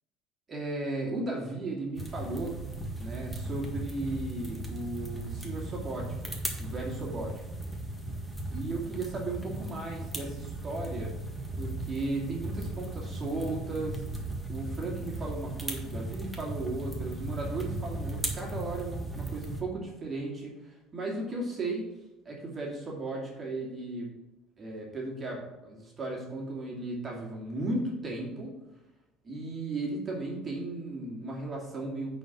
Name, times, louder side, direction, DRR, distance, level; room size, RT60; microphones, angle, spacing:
voice 1, 0.5-2.5 3.0-6.3 6.6-7.4 8.5-11.1 11.5-14.0 14.5-21.8 22.2-24.1 24.6-28.5 29.2-32.2, right 2 dB, 35° right, -2 dB, 2.5 m, -35 dB
sound 1, 2.0-19.6, right 1 dB, 5° right, 1.7 m, -37 dB
9.3 x 4.5 x 6.0 m, 1.0 s
supercardioid pair, 95°, 0 cm